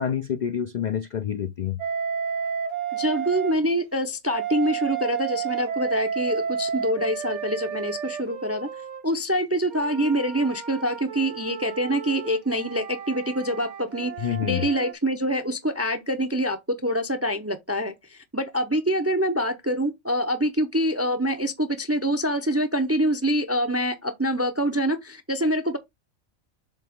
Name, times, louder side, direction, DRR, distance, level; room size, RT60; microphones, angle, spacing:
voice 1, 0.0-1.8 14.2-14.7, left 9 dB, 70° left, 0.4 m, -27 dB
Wind instrument woodwind instrument, 1.8-3.6 4.3-9.0 9.7-14.9, right 7 dB, 60° right, 1.3 m, -32 dB
voice 2, 2.9-8.7 9.0-25.8, equal, 25° right, 0.3 m, -25 dB
7.3 x 2.8 x 5.0 m
omnidirectional pair, 1.4 m